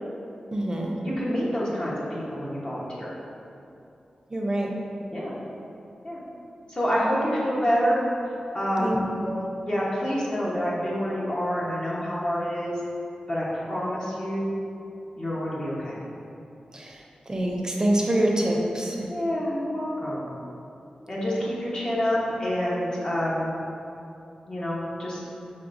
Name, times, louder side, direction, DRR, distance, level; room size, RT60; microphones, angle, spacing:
voice 1, 0.5-0.9 4.3-4.7 8.8-9.5 16.7-19.1, right 1 dB, 30° right, -1 dB, 0.6 m, -26 dB
voice 2, 1.0-3.1 5.1-5.3 6.0-6.2 6.7-8.0 8.5-9.0 9.7-12.8 13.3-14.6 15.2-16.0 19.1-20.4 21.1-23.5 24.5-25.2, equal, 40° left, -7 dB, 1.0 m, -27 dB
6.0 x 3.2 x 2.6 m, 2.7 s
wide cardioid pair, 70°, 2 cm